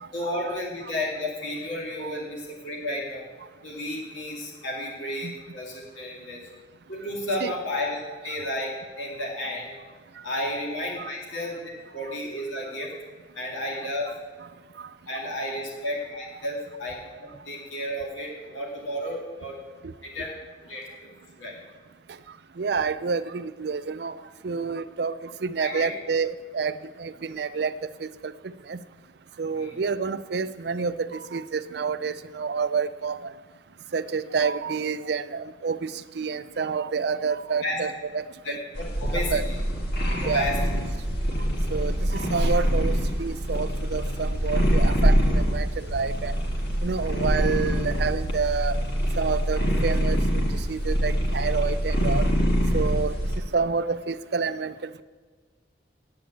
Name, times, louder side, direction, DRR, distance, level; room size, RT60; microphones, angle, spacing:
voice 1, 0.1-3.2 3.6-6.4 6.9-9.7 10.2-12.9 13.3-14.1 15.1-19.6 20.0-20.3 20.6-21.1 21.4-21.6 25.6-25.9 29.6-29.8 37.6-37.8 38.4-39.6 40.2-40.6, left 1 dB, 90° left, -2 dB, 2.3 m, -32 dB
voice 2, 22.6-24.2 24.4-27.7 28.0-28.3 28.7-28.8 29.4-33.3 33.9-38.6 39.1-39.4 40.1-40.5 41.7-46.3 46.8-48.8 49.2-52.3 52.7-53.2 53.5-55.0, right 5 dB, 60° right, 14 dB, 0.5 m, -29 dB
sound 1, 38.7-53.4, equal, 60° left, 1.6 m, -25 dB
8.7 x 8.7 x 8.4 m, 1.5 s
head